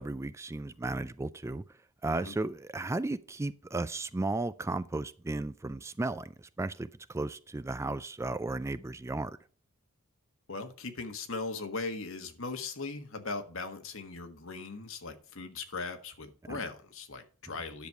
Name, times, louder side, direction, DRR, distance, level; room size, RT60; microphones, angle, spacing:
voice 1, 0.0-1.6 2.0-9.4 16.5-16.6, right 2 dB, 15° right, 0.3 m, -34 dB
voice 2, 10.5-17.9, left 3 dB, 65° left, 1.5 m, -39 dB
10.5 x 7.0 x 4.6 m
head